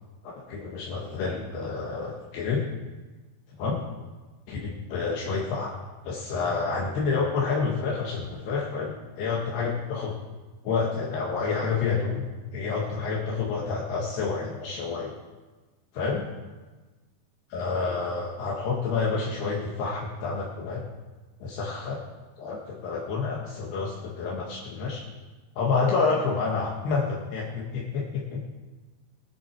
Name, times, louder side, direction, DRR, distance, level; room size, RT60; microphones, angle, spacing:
voice 1, 0.5-2.6 3.6-3.8 4.5-5.7 6.0-10.1 10.6-12.2 12.5-15.1 16.0-16.2 17.5-20.8 21.4-22.0 22.4-25.0 25.6-28.4, left 4 dB, 70° left, -3 dB, 3.5 m, -28 dB
20.5 x 10.5 x 4.6 m, 1.3 s
omnidirectional pair, 5.0 m